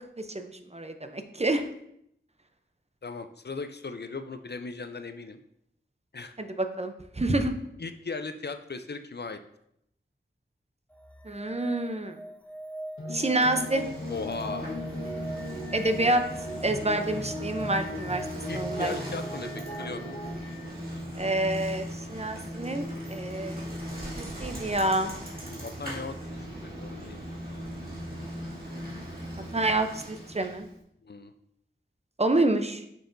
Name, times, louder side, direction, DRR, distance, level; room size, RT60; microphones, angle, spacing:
voice 1, 0.2-1.6 6.4-7.5 11.3-12.2 13.1-13.8 15.7-16.2 16.6-18.2 18.5-18.9 21.1-23.7 24.2-25.1 29.5-30.7 32.2-32.8, right 2 dB, 30° right, 7 dB, 0.6 m, -28 dB
voice 2, 3.0-5.4 6.1-6.3 7.8-9.4 14.1-14.7 18.5-20.2 25.6-27.2 31.0-31.3, left 4 dB, 55° left, 8 dB, 0.5 m, -37 dB
sound 1, 10.9-20.7 23.0-23.1, right 1 dB, 5° left, 0.7 m, -42 dB
sound 2, 13.0-20.4, left 2 dB, 80° left, 1.3 m, -39 dB
Bicycle, 13.2-30.7, equal, 45° right, 2.2 m, -39 dB
6.5 x 6.3 x 2.7 m, 0.74 s
wide cardioid pair, 45°, 21 cm